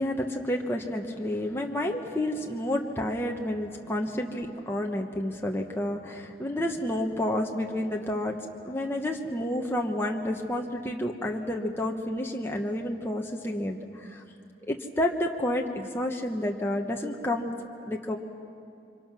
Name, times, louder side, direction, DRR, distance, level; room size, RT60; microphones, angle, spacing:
voice 1, 0.0-8.4 8.7-14.2 14.7-17.5 17.9-18.2, left 1 dB, 15° left, 1 dB, 1.1 m, -30 dB
29.5 x 25.0 x 6.1 m, 2.5 s
head